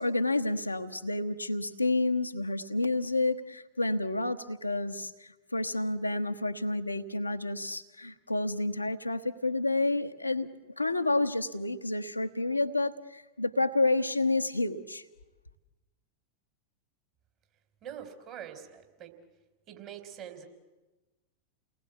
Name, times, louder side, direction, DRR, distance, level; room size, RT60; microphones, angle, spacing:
voice 1, 0.0-10.5 10.8-15.0, left 2 dB, 85° left, 6 dB, 1.1 m, -29 dB
voice 2, 17.8-19.1 19.7-20.5, right 9 dB, 35° right, 5 dB, 4.0 m, -44 dB
30.0 x 19.5 x 8.3 m, 1.1 s
figure-of-eight pair, 90°, 0 cm